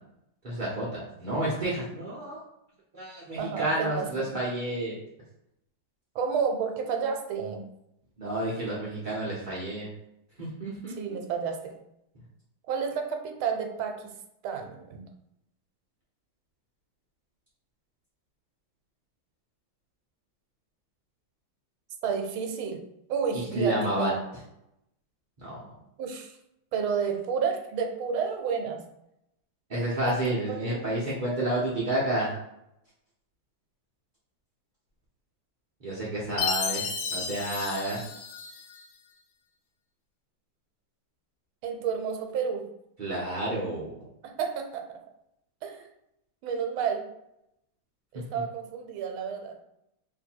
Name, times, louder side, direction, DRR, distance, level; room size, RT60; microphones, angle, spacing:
voice 1, 0.4-2.4 2.9-5.0 8.2-9.9 10.4-10.9 23.5-24.1 25.4-25.6 29.7-32.4 35.8-38.0 43.0-43.9, right 1 dB, 60° right, -8 dB, 0.5 m, -30 dB
voice 2, 3.4-4.4 6.1-7.6 11.0-11.7 12.7-14.1 14.4-15.0 22.0-22.8 23.1-24.2 26.0-26.4 26.7-28.8 30.0-30.2 30.5-30.8 41.6-42.6 44.2-45.0 45.6-45.8 46.4-47.0 48.1-49.6, right 6 dB, 85° right, 4 dB, 1.4 m, -31 dB
Chime, 36.4-38.8, left 6 dB, 80° left, 1.4 m, -32 dB
3.3 x 2.7 x 4.3 m, 0.81 s
omnidirectional pair, 2.3 m